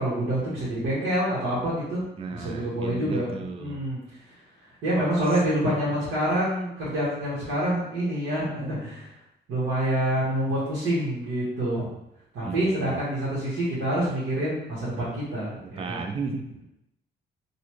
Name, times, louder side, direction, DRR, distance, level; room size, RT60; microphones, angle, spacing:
voice 1, 0.0-2.0 2.3-4.0 4.8-9.1 9.5-11.9 12.3-16.0, right 1 dB, 80° right, -9 dB, 1.5 m, -27 dB
voice 2, 2.2-3.8 12.4-13.0 15.6-16.6, right 4 dB, 30° right, 5 dB, 0.4 m, -35 dB
4.0 x 2.5 x 3.0 m, 0.81 s
cardioid pair, 90°, 20 cm